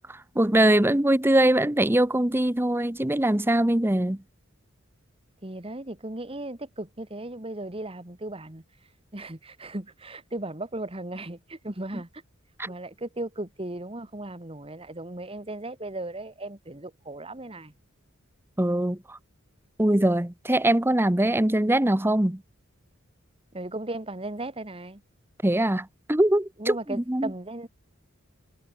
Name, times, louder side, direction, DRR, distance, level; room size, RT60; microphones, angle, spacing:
voice 1, 0.1-4.2 12.6-12.7 18.6-19.2 19.8-22.4 25.4-26.8 27.1-27.3, right 1 dB, 10° right, 0.8 m, -22 dB
voice 2, 5.4-8.6 9.1-12.1 12.6-17.7 23.5-25.0 26.6-27.7, right 2 dB, 25° right, 1.8 m, -36 dB
head